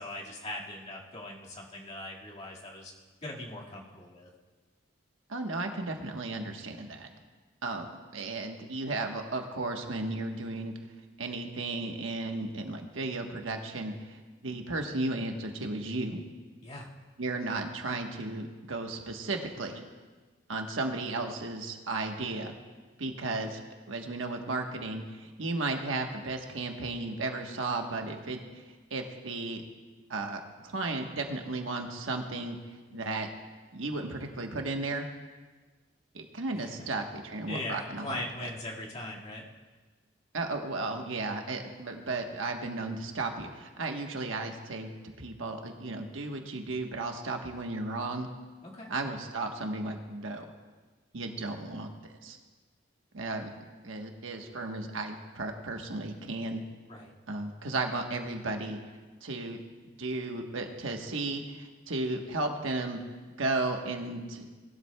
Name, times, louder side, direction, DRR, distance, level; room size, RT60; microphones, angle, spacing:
voice 1, 0.0-2.9 3.2-4.3 16.6-17.0 36.5-36.9 37.5-39.5 48.6-48.9 56.9-57.1, left 1 dB, 35° left, -4 dB, 1.9 m, -40 dB
voice 2, 5.3-7.1 7.6-7.9 8.1-10.7 11.2-16.2 17.2-19.8 20.5-22.5 23.0-23.6 23.9-28.6 28.9-29.6 30.1-32.6 32.9-33.3 33.7-35.1 36.1-38.5 40.3-48.3 48.9-50.4 51.1-51.9 52.2-52.4 53.1-53.5 53.8-56.6 57.3-58.8 59.2-59.6 60.0-63.0 63.4-64.5, right 2 dB, 85° right, 3 dB, 1.2 m, -34 dB
19.5 x 12.5 x 2.3 m, 1.3 s
head